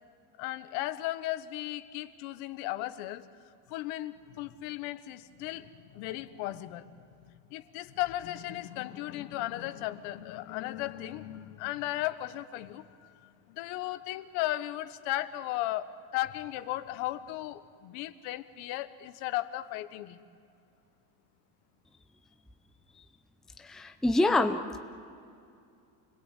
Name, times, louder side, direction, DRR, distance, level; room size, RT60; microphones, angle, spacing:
voice 1, 0.4-3.2 3.7-6.9 7.3-20.2, left 15 dB, 65° left, 12 dB, 1.4 m, -36 dB
voice 2, 23.6-24.8, left 2 dB, ahead, 6 dB, 0.6 m, -26 dB
29.5 x 20.5 x 8.4 m, 2.5 s
supercardioid pair, 145°, 45 cm